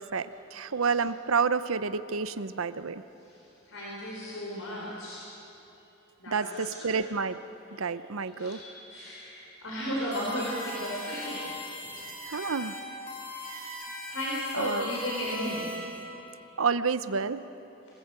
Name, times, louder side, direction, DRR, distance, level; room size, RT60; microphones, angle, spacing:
voice 1, 0.0-3.0 6.3-7.4 7.8-8.6 12.3-12.8 14.5-14.8 16.6-17.4, right 5 dB, 90° right, 13 dB, 0.8 m, -29 dB
voice 2, 3.7-5.3 6.2-7.0 7.7-7.8 8.3-12.5 13.3-13.6 14.1-15.7, equal, 85° left, -5 dB, 4.5 m, -35 dB
sound 1, 10.1-16.0, left 1 dB, 45° left, 5.3 m, -40 dB
26.5 x 18.5 x 8.3 m, 3.0 s
head